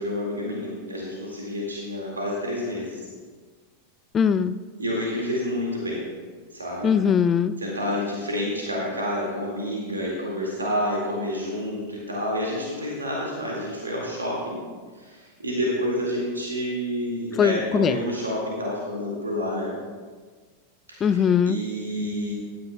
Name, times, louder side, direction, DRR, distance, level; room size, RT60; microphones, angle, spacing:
voice 1, 0.0-3.0 4.8-6.0 6.5-6.9 7.6-14.6 14.9-19.7 20.9-22.3, equal, 75° right, -3 dB, 2.0 m, -29 dB
voice 2, 4.1-4.5 6.8-7.5 17.4-18.0 21.0-21.6, left 7 dB, 25° left, 13 dB, 0.3 m, -20 dB
15.5 x 11.0 x 2.3 m, 1.5 s
figure-of-eight pair, 90°, 0 cm